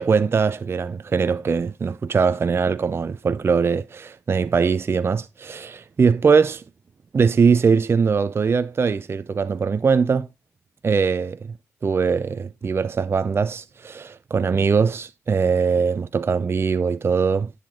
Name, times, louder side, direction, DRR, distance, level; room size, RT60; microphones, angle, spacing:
voice 1, 0.0-6.6 7.1-10.3 10.8-11.5 11.8-17.5, right 5 dB, 35° right, 0.5 m, -21 dB
10.5 x 6.6 x 3.7 m
hypercardioid pair, 45°, 7 cm